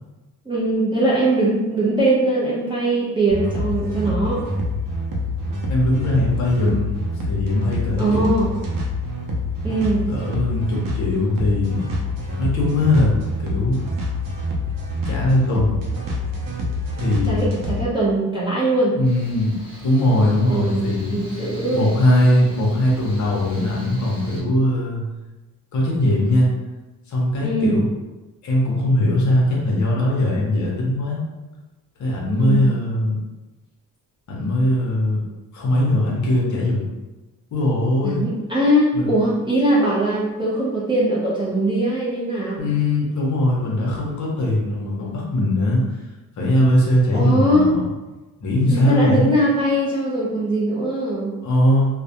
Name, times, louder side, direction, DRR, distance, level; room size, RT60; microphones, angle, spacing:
voice 1, 0.5-4.4 8.0-8.5 9.6-10.1 17.3-19.0 20.5-21.8 27.4-27.8 32.3-32.7 38.0-42.6 47.1-47.7 48.7-51.3, right 1 dB, 15° right, -7 dB, 0.5 m, -21 dB
sound 1, 3.3-17.9, left 2 dB, 60° right, 0.6 m, -26 dB
voice 2, 5.7-6.9 7.2-8.2 10.1-11.8 12.4-13.1 13.4-13.8 15.1-15.8 16.9-17.5 19.0-19.6 19.8-21.2 21.7-25.0 25.7-26.5 27.1-27.8 28.4-31.2 32.0-33.2 34.3-35.2 35.5-36.9 37.5-38.2 38.9-39.2 42.6-45.8 46.4-47.9 48.4-49.2 51.4-51.9, left 1 dB, 50° left, -3 dB, 0.7 m, -20 dB
Mechanical fan, 19.0-24.4, left 3 dB, 15° left, 0.9 m, -34 dB
2.2 x 2.1 x 2.7 m, 1.1 s
cardioid pair, 120°, 38 cm